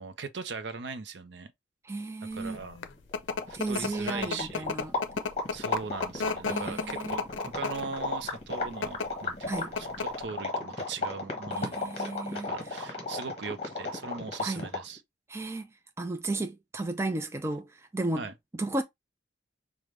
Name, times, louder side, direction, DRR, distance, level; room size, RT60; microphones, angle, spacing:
voice 1, 0.0-1.5 2.3-2.8 3.5-4.8 5.5-7.2 7.5-15.0 18.2-18.3, right 4 dB, 65° right, 0.5 m, -40 dB
voice 2, 1.8-2.6 3.5-4.9 6.5-7.2 9.5-9.8 11.5-12.5 14.4-14.6 15.3-15.7 16.0-18.3 18.5-18.8, right 2 dB, 15° right, 0.3 m, -34 dB
sound 1, 2.5-8.0 8.7-9.1 9.4-9.5 9.8-10.2, left 5 dB, 80° left, 0.5 m, -33 dB
sound 2, 3.0-3.1 3.2-15.0, left 2 dB, 30° left, 1.2 m, -35 dB
5.0 x 2.1 x 3.1 m
head